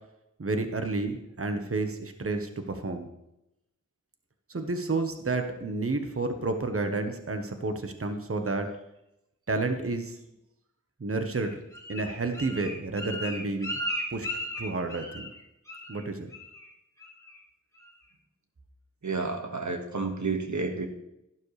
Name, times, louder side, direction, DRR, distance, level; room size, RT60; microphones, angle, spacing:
voice 1, 0.4-3.1 4.5-8.7 9.5-10.2 11.0-11.6 11.9-13.7 14.1-14.3 14.6-15.3 15.9-16.3, right 3 dB, 45° right, 6 dB, 1.2 m, -30 dB
Bird, 11.3-15.4 15.7-16.0 16.3-16.7 17.0-17.4 17.8-17.9, equal, 10° left, 2.8 m, -36 dB
voice 2, 19.0-20.9, right 3 dB, 70° right, 4 dB, 1.6 m, -30 dB
12.5 x 11.5 x 3.3 m, 0.86 s
wide cardioid pair, 75°, 31 cm